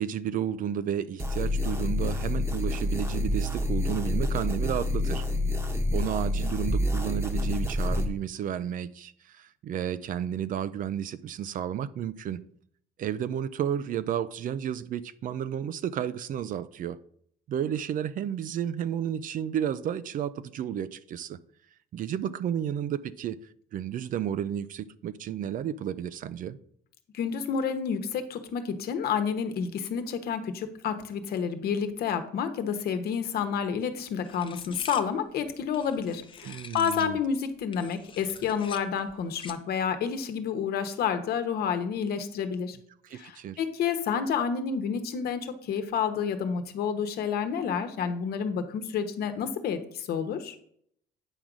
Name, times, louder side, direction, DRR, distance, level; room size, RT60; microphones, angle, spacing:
voice 1, 0.0-5.2 5.9-12.4 13.0-17.0 17.5-21.4 21.9-23.4 23.7-26.6 36.4-37.2 43.0-43.6, right 9 dB, 55° right, 0.5 m, -32 dB
sound 1, 1.2-8.1, left 1 dB, 15° right, 1.1 m, -28 dB
voice 2, 27.1-42.8 43.1-50.6, left 7 dB, 65° left, 1.1 m, -29 dB
sound 2, 34.2-37.2 37.6-39.7, left 6 dB, 30° left, 0.6 m, -45 dB
8.8 x 3.8 x 6.1 m
cardioid pair, 110°, 17 cm